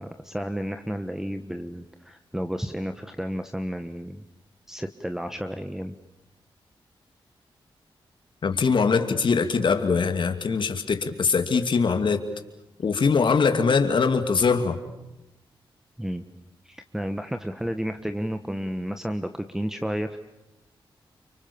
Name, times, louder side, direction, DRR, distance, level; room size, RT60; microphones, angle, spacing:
voice 1, 0.0-4.2 4.7-5.9 16.0-16.2 16.6-20.2, equal, 5° right, 8 dB, 1.3 m, -32 dB
voice 2, 8.4-12.2 12.8-14.8, left 5 dB, 60° left, 7 dB, 2.5 m, -22 dB
30.0 x 26.0 x 7.1 m, 0.92 s
wide cardioid pair, 95°, 9 cm